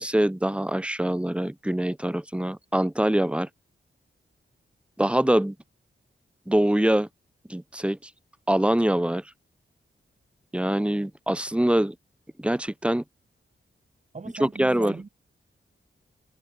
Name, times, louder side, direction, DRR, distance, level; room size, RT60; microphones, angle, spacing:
voice 1, 0.0-3.5 5.0-5.5 6.5-7.1 7.5-8.0 8.5-9.2 10.5-11.9 12.4-13.0 14.4-14.9, right 1 dB, 5° right, 0.9 m, -24 dB
voice 2, 14.1-15.1, right 4 dB, 35° right, 2.4 m, -38 dB
wide cardioid pair, 140°, 21 cm